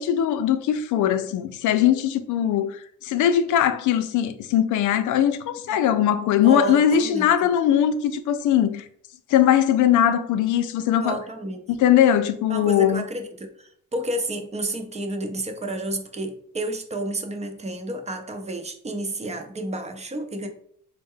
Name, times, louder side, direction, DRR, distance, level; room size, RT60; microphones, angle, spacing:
voice 1, 0.0-8.8 9.3-11.2 11.7-13.0, left 10 dB, 80° left, 0.5 m, -20 dB
voice 2, 6.4-7.3 11.0-11.6 12.5-20.5, right 2 dB, 20° right, 0.6 m, -30 dB
4.4 x 2.0 x 3.6 m
cardioid pair, 90°, 30 cm